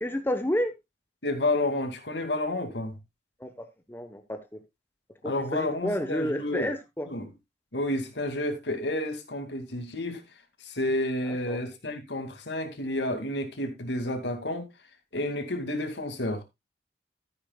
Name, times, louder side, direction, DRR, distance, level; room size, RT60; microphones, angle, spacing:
voice 1, 0.0-0.7 3.4-4.4 5.2-7.1 11.2-11.6, equal, 10° left, 1.0 m, -31 dB
voice 2, 1.2-2.9 5.2-6.7 7.1-7.3 7.7-10.2 10.6-14.7 15.1-16.4, left 1 dB, 75° left, 2.3 m, -30 dB
13.0 x 9.9 x 2.3 m
head